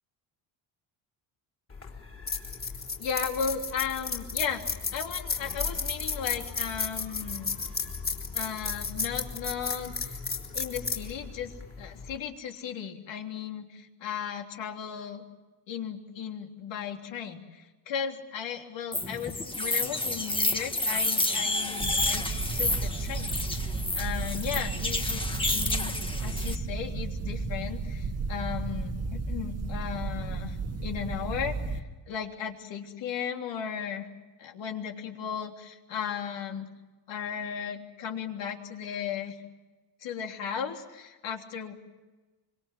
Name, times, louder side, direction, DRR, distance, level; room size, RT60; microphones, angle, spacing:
sound 1, 1.7-12.2, left 4 dB, 25° left, 3.9 m, -34 dB
voice 1, 3.0-7.5 8.3-10.2 10.5-15.2 15.7-22.2 22.5-23.4 23.6-30.6 30.8-34.1 34.4-36.7 37.1-39.4 40.0-41.7, left 7 dB, 60° left, 3 dB, 3.4 m, -36 dB
sound 2, 18.9-26.5, left 2 dB, 10° left, 1.6 m, -30 dB
sound 3, 21.8-31.8, right 3 dB, 30° right, 1.8 m, -33 dB
25.5 x 24.5 x 7.8 m, 1.2 s
cardioid pair, 145°, 50 cm